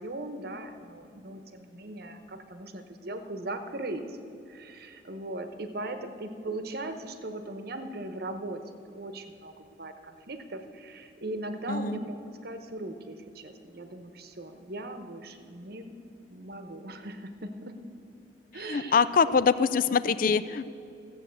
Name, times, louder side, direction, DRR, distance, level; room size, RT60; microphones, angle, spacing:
voice 1, 0.0-4.2 4.5-8.6 8.9-15.9 16.3-17.7 18.5-19.4, right 2 dB, 55° right, 8 dB, 1.0 m, -39 dB
voice 2, 18.7-20.7, left 5 dB, 50° left, 15 dB, 0.4 m, -24 dB
14.5 x 7.7 x 7.7 m, 2.6 s
head